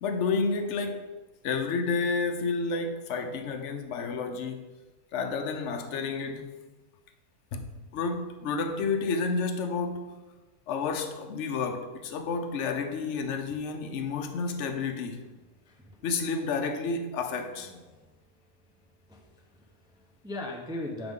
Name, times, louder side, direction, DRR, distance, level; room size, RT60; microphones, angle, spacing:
voice 1, 0.0-1.0 1.4-4.6 5.1-6.5 7.5-7.7 7.9-10.2 10.7-15.2 16.0-17.7, left 4 dB, 60° left, 0.9 m, -30 dB
voice 2, 15.3-16.1 17.4-18.2 19.1-21.1, left 1 dB, 5° right, 0.4 m, -41 dB
7.8 x 5.0 x 3.6 m
omnidirectional pair, 1.5 m